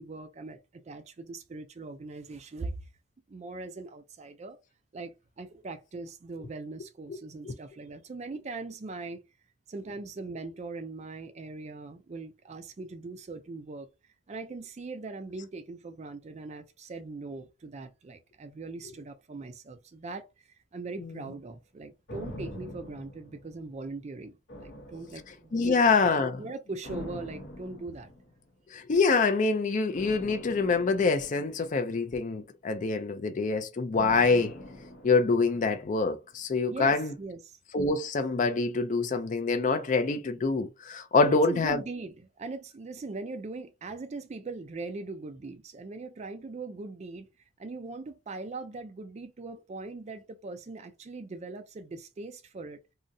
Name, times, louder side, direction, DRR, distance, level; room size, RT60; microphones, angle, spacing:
voice 1, 0.0-2.8 3.3-4.6 4.9-9.2 9.7-13.9 14.3-20.3 20.7-25.8 26.4-28.1 36.7-37.6 41.2-47.3 47.6-52.8, right 3 dB, 35° right, 0.4 m, -40 dB
sound 1, 22.1-24.0 24.5-25.7 26.8-28.5 29.9-32.3 33.9-36.1 36.4-36.5, left 1 dB, 65° left, 0.8 m, -45 dB
voice 2, 25.5-26.4 28.7-34.5 35.0-37.1 37.7-41.8, left 4 dB, 40° left, 0.4 m, -25 dB
3.8 x 2.1 x 2.6 m
head